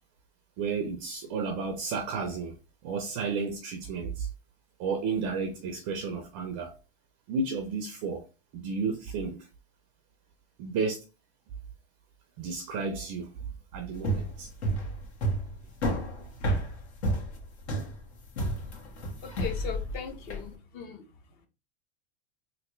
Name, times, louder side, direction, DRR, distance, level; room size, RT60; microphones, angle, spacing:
voice 1, 0.6-2.5 2.8-4.3 4.8-6.7 7.3-8.2 8.5-9.5 10.6-11.0 12.4-13.3 13.7-14.5, right 4 dB, 30° right, 0.4 m, -32 dB
sound 1, 13.9-20.5, right 1 dB, 80° left, 1.6 m, -31 dB
voice 2, 19.2-21.0, left 7 dB, 30° left, 0.5 m, -38 dB
3.3 x 2.5 x 3.0 m
supercardioid pair, 160°, 33 cm